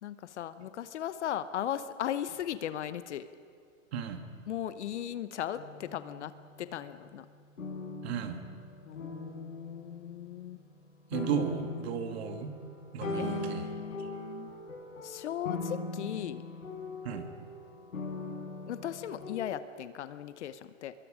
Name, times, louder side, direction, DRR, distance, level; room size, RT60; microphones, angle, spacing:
voice 1, 0.0-3.3 4.5-6.3 6.6-7.2 8.8-10.6 13.1-14.6 15.0-16.4 18.7-20.9, left 10 dB, 60° left, 13 dB, 0.9 m, -37 dB
voice 2, 3.9-4.2 8.0-8.4 11.1-12.6 12.9-13.7 14.0-14.1 17.0-17.3, right 7 dB, 50° right, 7 dB, 2.1 m, -34 dB
sound 1, 5.6-6.7 7.6-10.8 11.1-19.4, left 2 dB, 80° left, 5.6 m, -41 dB
24.5 x 22.5 x 5.0 m, 2.2 s
hypercardioid pair, 135°, 39 cm